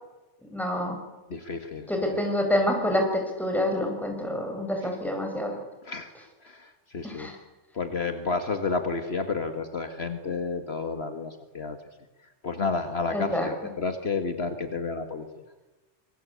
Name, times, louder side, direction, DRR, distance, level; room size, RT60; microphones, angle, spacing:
voice 1, 0.5-1.0 1.9-5.6 7.0-7.4 13.1-13.5, left 1 dB, ahead, 2 dB, 6.2 m, -27 dB
voice 2, 1.3-2.2 5.8-7.3 7.7-11.8 12.4-15.3, left 4 dB, 55° left, 8 dB, 1.9 m, -31 dB
26.0 x 23.0 x 8.5 m, 1.1 s
omnidirectional pair, 1.3 m